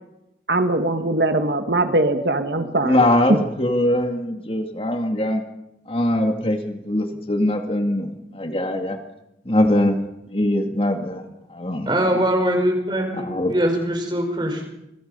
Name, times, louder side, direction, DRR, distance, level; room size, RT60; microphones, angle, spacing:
voice 1, 0.5-3.0, right 2 dB, 70° right, 7 dB, 1.7 m, -21 dB
voice 2, 2.8-5.4 5.9-9.0 9.5-10.0 10.3-12.2 13.1-13.5, left 1 dB, 30° left, 5 dB, 2.1 m, -22 dB
voice 3, 11.9-14.7, right 1 dB, 25° right, 4 dB, 4.9 m, -22 dB
28.5 x 24.0 x 5.5 m, 0.88 s
head